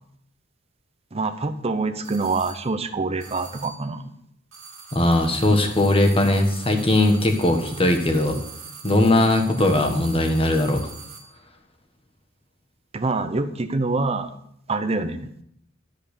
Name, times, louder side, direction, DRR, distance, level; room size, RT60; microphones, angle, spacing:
voice 1, 1.1-4.1 12.9-14.4 14.7-15.4, right 3 dB, 30° right, 8 dB, 0.7 m, -26 dB
sound 1, 2.0-2.7 3.2-3.9 4.5-11.4, right 5 dB, 60° right, 2.4 m, -43 dB
voice 2, 4.9-8.4 8.8-10.8, left 1 dB, 25° left, 4 dB, 1.4 m, -19 dB
12.5 x 5.7 x 6.7 m, 0.71 s
head